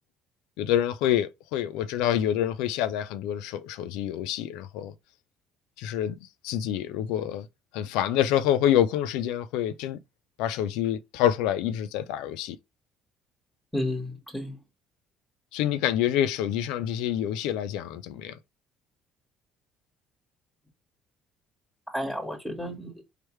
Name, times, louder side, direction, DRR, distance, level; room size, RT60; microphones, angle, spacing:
voice 1, 0.6-4.9 5.8-6.1 6.4-7.5 7.7-10.0 10.4-12.6 15.5-18.4, left 11 dB, 80° left, 0.5 m, -27 dB
voice 2, 13.7-14.6 21.9-23.0, left 1 dB, 5° left, 1.6 m, -32 dB
4.9 x 3.0 x 3.2 m
supercardioid pair, 65°, 0 cm